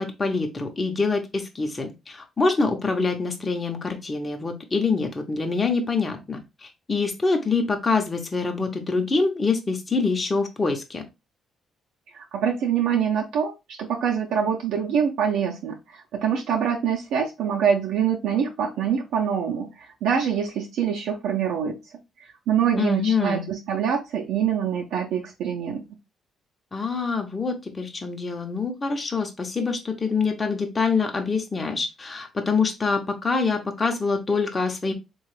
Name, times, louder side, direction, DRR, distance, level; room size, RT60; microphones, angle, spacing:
voice 1, 0.0-11.0 22.8-23.5 26.7-34.9, left 4 dB, 30° left, 3 dB, 0.7 m, -25 dB
voice 2, 12.1-21.8 22.5-25.8, right 7 dB, 85° right, -1 dB, 0.6 m, -25 dB
3.6 x 2.3 x 3.2 m, 0.25 s
cardioid pair, 90°, 0 cm